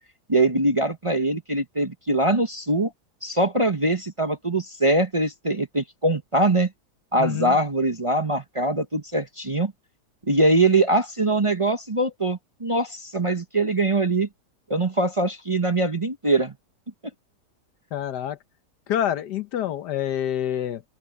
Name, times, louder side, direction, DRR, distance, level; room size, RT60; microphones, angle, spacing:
voice 1, 0.3-2.9 3.2-6.7 7.1-9.7 10.3-14.3 14.7-16.5, right 2 dB, 25° right, 0.9 m, -22 dB
voice 2, 7.2-7.6 17.9-18.4 18.9-20.8, left 10 dB, 80° left, 1.5 m, -27 dB
open air
omnidirectional pair, 1.7 m